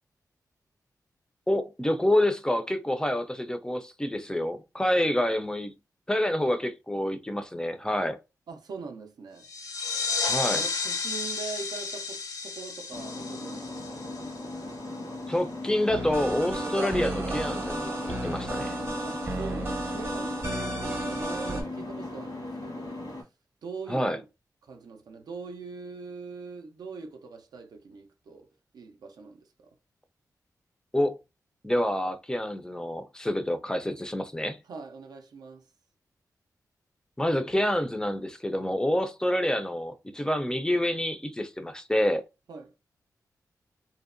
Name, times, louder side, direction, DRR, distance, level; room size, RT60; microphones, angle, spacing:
voice 1, 1.5-5.7 6.1-8.2 10.3-10.6 15.3-18.8 23.9-24.2 30.9-31.2 31.6-34.6 37.2-42.2, left 1 dB, 10° left, 0.4 m, -27 dB
voice 2, 8.5-9.5 10.5-14.1 19.0-23.0 23.6-24.3 24.6-28.5 28.7-29.8 34.7-35.7 42.5-42.7, right 4 dB, 80° right, 0.4 m, -42 dB
sound 1, 9.4-14.8, left 4 dB, 65° left, 0.5 m, -32 dB
sound 2, 12.9-23.2, left 2 dB, 85° left, 1.2 m, -38 dB
sound 3, 15.9-21.6, right 1 dB, 35° right, 0.7 m, -33 dB
2.7 x 2.0 x 2.4 m
cardioid pair, 70°, 7 cm